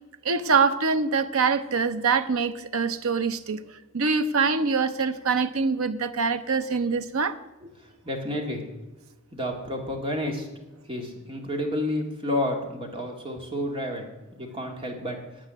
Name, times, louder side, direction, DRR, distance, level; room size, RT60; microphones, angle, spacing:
voice 1, 0.2-3.6 3.9-7.4, right 5 dB, 85° right, 0.7 m, -24 dB
voice 2, 8.0-8.6 9.3-10.5 10.9-14.1 14.4-15.2, left 1 dB, 25° right, 2.0 m, -30 dB
8.9 x 8.7 x 9.3 m
head